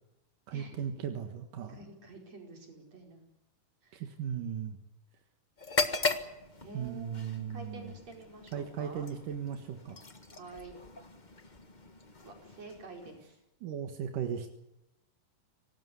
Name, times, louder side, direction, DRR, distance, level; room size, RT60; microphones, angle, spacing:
voice 1, 0.5-1.7 3.9-4.8 6.7-7.9 8.5-10.1 13.6-14.5, right 8 dB, 85° right, 6 dB, 3.2 m, -37 dB
voice 2, 1.7-3.2 3.8-4.0 6.6-9.1 10.3-10.7 12.2-13.4, right 3 dB, 55° right, 3 dB, 6.1 m, -49 dB
sound 1, 5.6-13.4, left 3 dB, 40° left, 0.6 m, -38 dB
25.5 x 18.5 x 8.3 m, 0.93 s
omnidirectional pair, 3.6 m